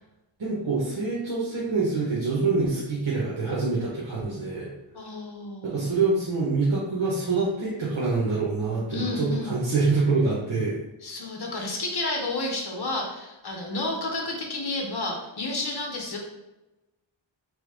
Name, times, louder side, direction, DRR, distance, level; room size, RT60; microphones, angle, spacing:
voice 1, 0.4-4.7 5.6-10.7 11.5-11.7, right 3 dB, 70° right, -7 dB, 1.3 m, -26 dB
voice 2, 4.9-5.9 8.9-9.6 11.0-16.2, left 2 dB, 55° left, 1 dB, 1.2 m, -31 dB
4.1 x 3.5 x 3.4 m, 1.0 s
wide cardioid pair, 95°, 47 cm